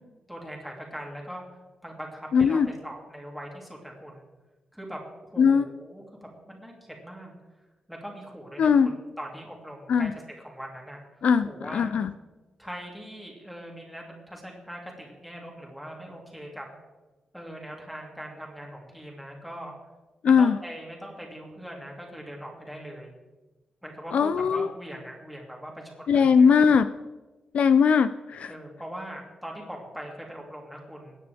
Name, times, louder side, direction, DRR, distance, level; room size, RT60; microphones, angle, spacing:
voice 1, 0.3-1.4 1.8-4.3 4.7-6.0 6.5-6.7 7.0-7.3 7.9-8.9 9.2-10.1 10.4-11.0 11.4-11.9 12.6-16.7 17.3-19.7 20.2-23.1 23.8-26.5 28.5-31.2, equal, ahead, 0 dB, 2.7 m, -41 dB
voice 2, 2.3-2.7 5.4-5.7 8.6-8.9 9.9-10.1 11.2-12.1 20.2-20.6 24.1-24.7 26.1-26.9 27.5-28.5, left 6 dB, 65° left, 12 dB, 0.4 m, -20 dB
22.0 x 9.8 x 3.5 m, 1.2 s
wide cardioid pair, 160°, 2 cm